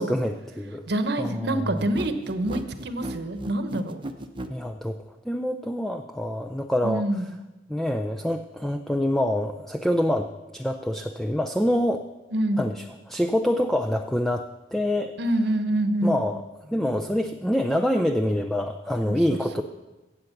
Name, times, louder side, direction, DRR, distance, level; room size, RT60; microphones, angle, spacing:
voice 1, 0.0-0.8 1.2-1.6 4.5-5.0 5.3-7.0 7.7-12.0 12.6-15.1 16.0-19.6, equal, ahead, 4 dB, 0.4 m, -26 dB
voice 2, 0.9-4.0 6.8-7.3 12.3-12.6 15.2-16.2 19.1-19.6, right 1 dB, 65° right, 9 dB, 1.0 m, -26 dB
sound 1, 1.8-4.6, right 1 dB, 30° right, 0.8 m, -35 dB
16.0 x 7.9 x 5.9 m, 1.1 s
head